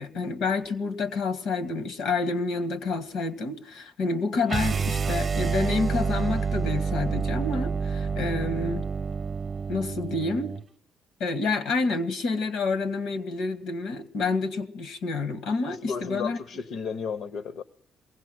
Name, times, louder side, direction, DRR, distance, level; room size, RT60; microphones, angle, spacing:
voice 1, 0.0-8.8 9.7-10.5 11.2-16.4, left 3 dB, 90° left, 13 dB, 1.8 m, -28 dB
sound 1, 4.5-10.6, right 5 dB, 40° right, 0.7 m, -28 dB
voice 2, 15.7-17.6, left 6 dB, 70° left, 12 dB, 0.9 m, -33 dB
22.5 x 16.5 x 7.8 m, 0.68 s
cardioid pair, 90°, 0 cm